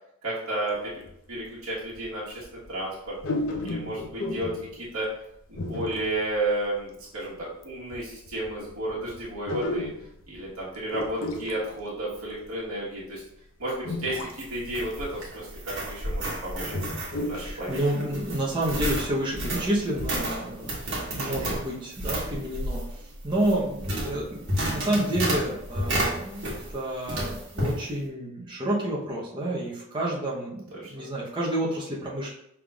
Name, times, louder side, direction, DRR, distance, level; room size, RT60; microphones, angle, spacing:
voice 1, 0.2-1.0 1.3-3.2 3.6-5.1 5.5-9.9 10.3-13.2 13.6-16.7 17.3-17.8 21.0-21.4 30.7-30.9, right 1 dB, 85° right, -7 dB, 1.3 m, -32 dB
sound 1, 1.0-1.1 1.9-2.1 2.4-2.6 3.2-4.8 5.5-6.3 6.8-6.9 7.6-7.7 7.9-10.6 10.9-12.5 13.2-13.3 13.8-14.6 14.9-15.0 15.6-15.9 16.5-17.5 17.9-18.0 18.3-18.4, left 2 dB, 65° left, 0.6 m, -33 dB
sound 2, 14.4-26.8 27.1-27.8, right 1 dB, 55° right, 1.4 m, -31 dB
voice 2, 17.3-20.9 21.2-24.4 24.7-32.4, right 1 dB, 20° right, -5 dB, 0.8 m, -29 dB
5.5 x 3.4 x 2.3 m, 0.77 s
head